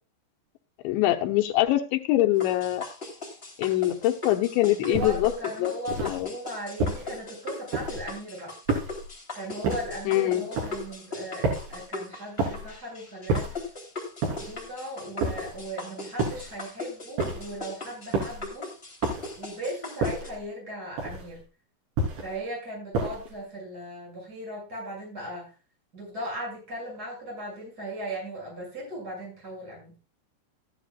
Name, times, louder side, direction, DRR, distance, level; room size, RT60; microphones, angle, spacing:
voice 1, 0.8-2.8 3.6-5.3 5.6-5.7 6.0-6.3 10.1-10.4, left 15 dB, 80° left, 5 dB, 3.2 m, -24 dB
sound 1, 2.4-20.3, left 3 dB, 15° left, 2.8 m, -39 dB
voice 2, 4.7-8.5 9.3-13.5 14.4-18.7 19.4-21.4 22.2-25.5 25.9-29.9, right 1 dB, 20° right, -2 dB, 6.9 m, -37 dB
sound 2, 4.9-5.3 5.9-6.2 6.8-7.2 7.7-8.1 8.7-9.1 9.6-10.0 10.5-10.9 11.4-11.8 12.4-12.8 13.3-13.7 14.2-14.6 15.2-15.6 16.2-16.6 17.2-17.6 18.1-18.5 19.0-19.4 20.0-20.4 21.0-21.4 22.0-22.4 22.9-23.4, right 3 dB, 80° right, 5.9 m, -30 dB
14.0 x 11.5 x 2.4 m, 0.31 s
omnidirectional pair, 5.1 m